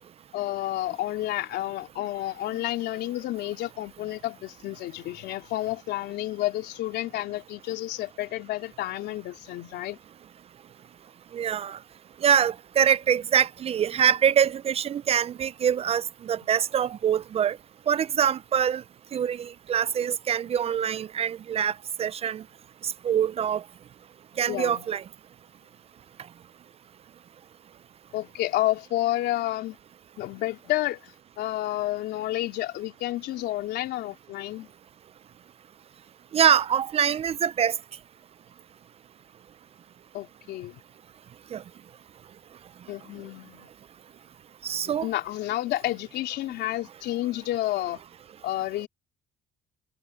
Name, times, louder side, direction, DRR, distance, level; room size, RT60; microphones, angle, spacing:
voice 1, 0.3-10.0 24.5-24.9 28.1-29.8 30.2-34.7 40.1-40.8 42.9-43.7 45.0-48.0 48.4-48.9, left 15 dB, 80° left, 3.5 m, -30 dB
voice 2, 11.3-11.8 12.2-17.6 17.9-18.8 19.1-21.7 22.0-22.4 22.8-23.6 24.4-25.0 36.3-37.7 41.5-41.6 44.6-45.1, right 8 dB, 35° right, 0.4 m, -24 dB
cardioid pair, 110°, 17 cm